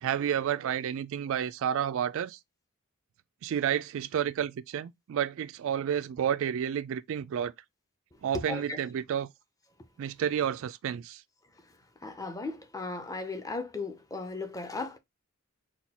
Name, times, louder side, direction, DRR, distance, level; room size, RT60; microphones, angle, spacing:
voice 1, 0.0-2.4 3.4-7.5 8.2-9.3 10.0-11.2, right 9 dB, 65° right, 0.3 m, -30 dB
voice 2, 8.3-8.8 12.0-15.0, left 3 dB, 15° left, 0.6 m, -36 dB
4.3 x 2.3 x 4.2 m
head